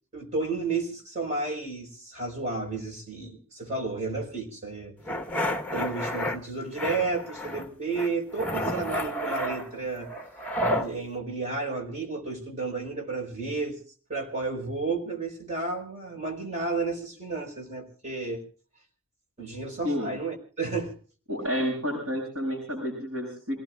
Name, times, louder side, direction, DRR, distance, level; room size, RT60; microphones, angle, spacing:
voice 1, 0.1-4.9 5.7-10.1 10.7-13.8 14.1-18.4 19.4-20.9, right 3 dB, 35° right, 2 dB, 4.8 m, -32 dB
sound 1, 5.1-6.4 6.8-7.7 7.9-10.9, equal, 5° left, 1.2 m, -30 dB
voice 2, 21.3-23.6, equal, 80° right, -2 dB, 7.7 m, -30 dB
28.0 x 18.5 x 2.4 m, 0.38 s
head